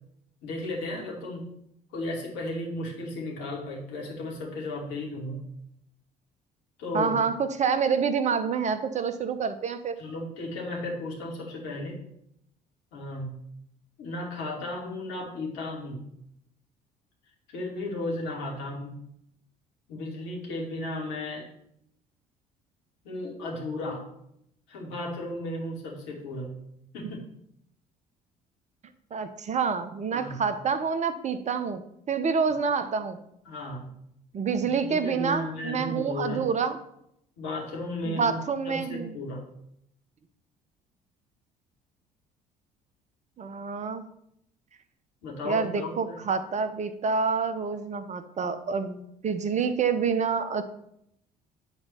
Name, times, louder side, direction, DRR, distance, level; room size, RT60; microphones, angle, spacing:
voice 1, 0.4-1.5 1.9-5.4 6.8-7.1 10.0-12.0 12.9-13.3 14.0-16.1 17.5-18.9 19.9-21.5 23.0-24.1 24.7-26.5 26.9-27.2 30.1-30.4 33.4-33.9 34.8-36.5 37.4-38.4 38.6-39.4 45.2-46.2, left 1 dB, 60° left, -3 dB, 2.9 m, -34 dB
voice 2, 6.9-10.0 29.1-31.8 32.1-33.2 34.3-36.8 38.0-39.1 43.4-44.0 45.4-50.6, right 5 dB, 35° right, 11 dB, 1.0 m, -27 dB
9.9 x 4.1 x 6.9 m, 0.74 s
figure-of-eight pair, 50°, 21 cm